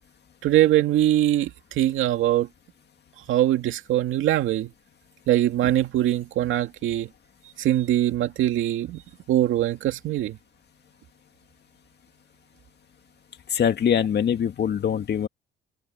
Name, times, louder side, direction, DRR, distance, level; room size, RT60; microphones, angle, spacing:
voice 1, 0.4-2.5 3.3-4.7 5.3-7.1 7.6-9.0 9.3-10.4, right 13 dB, 85° right, 2.4 m, -22 dB
voice 2, 13.5-15.3, left 8 dB, 55° left, 2.2 m, -23 dB
cardioid pair, 90°, 20 cm